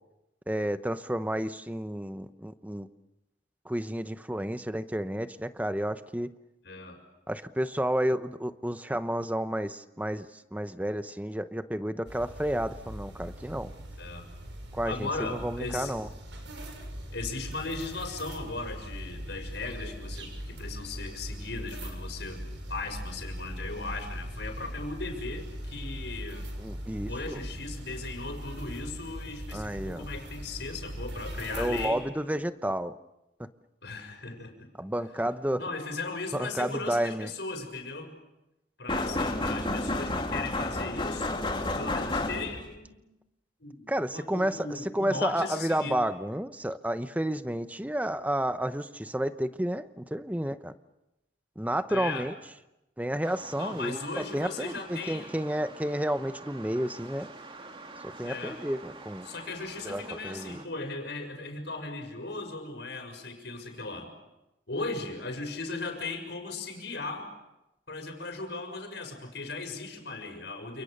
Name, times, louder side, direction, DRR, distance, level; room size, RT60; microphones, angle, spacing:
voice 1, 0.5-2.9 3.6-6.3 7.3-13.7 14.7-16.1 26.6-27.4 29.5-30.1 31.5-33.0 33.4-33.5 34.8-35.6 36.3-37.3 43.9-50.7 51.6-52.3 53.0-57.3 58.2-59.3 59.8-60.6, right 1 dB, 10° right, 11 dB, 0.9 m, -31 dB
voice 2, 6.6-7.0 14.0-14.2 14.8-15.9 17.1-26.5 27.1-32.0 33.8-34.5 35.6-38.1 38.8-41.3 41.8-43.0 43.6-46.0 51.9-52.3 53.6-55.3 58.2-58.6 59.2-64.1 64.7-67.3 67.9-70.8, left 3 dB, 70° left, 5 dB, 6.4 m, -37 dB
sound 1, 12.1-31.9, equal, 80° right, 6.9 m, -40 dB
sound 2, 38.9-42.8, left 2 dB, 30° left, 2.9 m, -30 dB
sound 3, 53.2-60.7, right 3 dB, 30° right, 2.6 m, -47 dB
29.5 x 28.5 x 6.7 m, 0.93 s
head